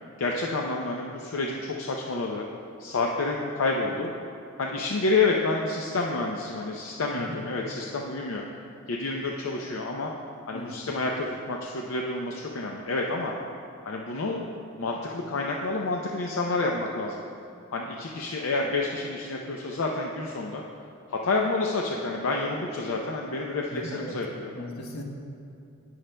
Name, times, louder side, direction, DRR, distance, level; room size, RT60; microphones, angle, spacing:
voice 1, 0.2-2.4 2.8-4.1 4.6-8.4 8.9-10.1 10.5-13.3 13.9-14.5 14.8-17.2 17.7-20.6 21.1-24.5, left 3 dB, 65° left, 0 dB, 0.5 m, -29 dB
voice 2, 23.7-24.2 24.5-25.0, equal, 80° left, 0 dB, 1.0 m, -37 dB
17.0 x 6.4 x 2.2 m, 2.6 s
head